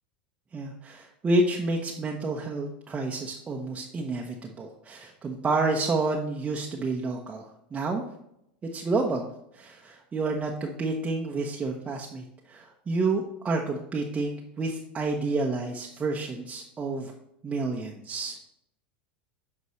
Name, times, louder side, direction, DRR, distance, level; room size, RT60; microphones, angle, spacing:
voice 1, 0.5-8.0 8.6-9.3 9.5-17.1 17.4-18.4, right 3 dB, 25° right, 0 dB, 0.9 m, -29 dB
9.3 x 5.3 x 3.1 m, 0.77 s
hypercardioid pair, 85°, 5 cm